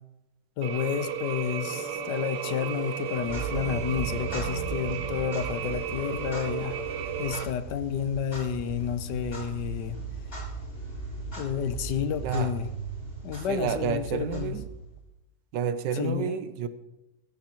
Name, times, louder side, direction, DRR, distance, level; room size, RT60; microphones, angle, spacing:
voice 1, 0.6-6.8 7.2-10.0 11.4-12.7 13.2-14.6 15.9-16.4, left 8 dB, 75° left, 1.4 m, -31 dB
sound 1, 0.6-7.4, right 9 dB, 65° right, 0.8 m, -34 dB
sound 2, 1.6-7.3, left 2 dB, 15° left, 0.7 m, -46 dB
Clock, 3.1-15.1, right 4 dB, 35° left, 5.7 m, -37 dB
voice 2, 12.2-12.5 13.5-14.7 15.5-16.7, right 8 dB, 80° right, 1.4 m, -30 dB
15.0 x 14.5 x 3.0 m
omnidirectional pair, 1.9 m